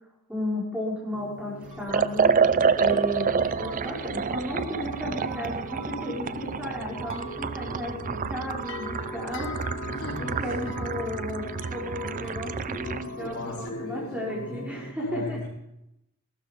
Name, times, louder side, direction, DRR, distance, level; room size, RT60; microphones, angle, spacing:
voice 1, 0.3-2.3 2.7-9.5 10.2-15.4, equal, 5° right, -4 dB, 5.1 m, -34 dB
sound 1, 1.1-14.9, left 1 dB, 55° left, 1.2 m, -40 dB
Liquid, 1.9-13.1, right 5 dB, 35° right, 0.4 m, -28 dB
sound 2, 3.6-4.0 4.9-7.4 8.2-9.0 9.9-12.4, right 6 dB, 70° right, 6.6 m, -45 dB
voice 2, 9.9-10.8 13.2-15.5, left 2 dB, 75° left, -1 dB, 4.0 m, -37 dB
16.0 x 12.5 x 5.2 m, 0.84 s
head